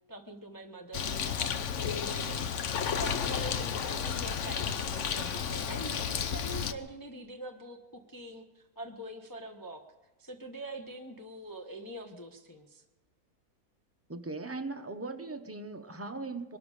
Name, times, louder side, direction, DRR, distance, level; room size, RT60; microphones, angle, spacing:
voice 1, 0.1-2.5 2.8-9.8 10.2-12.8, right 1 dB, 15° left, 2 dB, 0.9 m, -44 dB
Bird, 0.9-6.7, left 7 dB, 60° left, 1.1 m, -32 dB
voice 2, 14.1-16.6, right 3 dB, 15° right, 6 dB, 0.7 m, -39 dB
23.0 x 13.0 x 4.9 m, 1.2 s
omnidirectional pair, 1.6 m